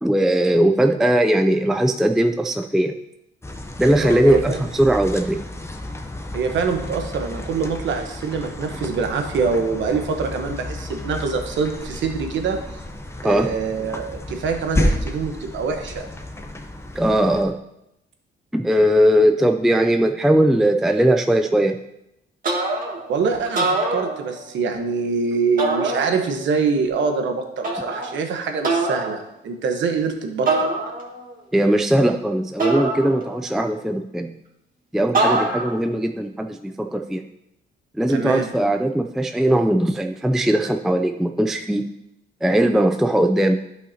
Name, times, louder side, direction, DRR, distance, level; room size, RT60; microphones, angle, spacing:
voice 1, 0.0-3.0 3.8-5.4 13.2-13.5 17.0-17.6 18.5-21.8 31.5-34.3 34.9-37.2 38.0-41.9 42.4-43.6, right 1 dB, ahead, 6 dB, 0.4 m, -19 dB
sound 1, 3.4-17.5, left 1 dB, 15° left, 0.8 m, -31 dB
voice 2, 4.0-4.6 6.3-12.9 13.2-16.1 23.1-30.7 38.1-38.5, right 5 dB, 70° right, 5 dB, 1.1 m, -25 dB
sound 2, 22.4-23.1 23.4-24.6 25.6-26.5 27.6-28.2 28.6-29.2 30.5-31.3 32.6-33.6 35.1-35.9, right 2 dB, 45° right, 2.0 m, -24 dB
11.0 x 5.6 x 2.8 m, 0.85 s
cardioid pair, 90°, 20 cm